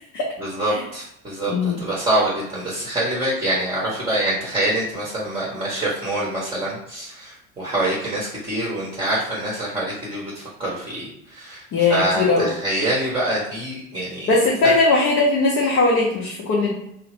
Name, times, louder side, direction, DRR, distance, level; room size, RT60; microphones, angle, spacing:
voice 1, 0.4-11.0 11.3-14.7, right 1 dB, 10° right, -6 dB, 0.9 m, -25 dB
voice 2, 1.5-1.8 11.7-12.5 14.3-16.7, left 3 dB, 35° left, -4 dB, 0.7 m, -19 dB
2.8 x 2.0 x 3.1 m, 0.76 s
hypercardioid pair, 75°, 41 cm